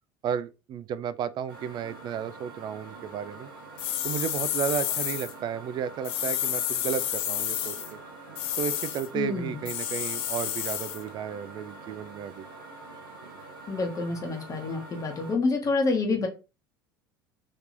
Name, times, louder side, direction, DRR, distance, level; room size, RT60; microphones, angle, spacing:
voice 1, 0.2-3.5 4.0-7.7 8.6-12.5, right 8 dB, 40° right, 0.3 m, -33 dB
sound 1, 1.5-15.4, right 3 dB, 75° right, 0.7 m, -45 dB
sound 2, 3.8-5.3 6.0-7.9 8.4-9.1 9.7-11.0, left 11 dB, 50° left, 0.5 m, -30 dB
voice 2, 9.1-9.6 13.7-16.3, left 3 dB, 30° left, 1.1 m, -28 dB
3.2 x 2.9 x 2.5 m
hypercardioid pair, 70°, 12 cm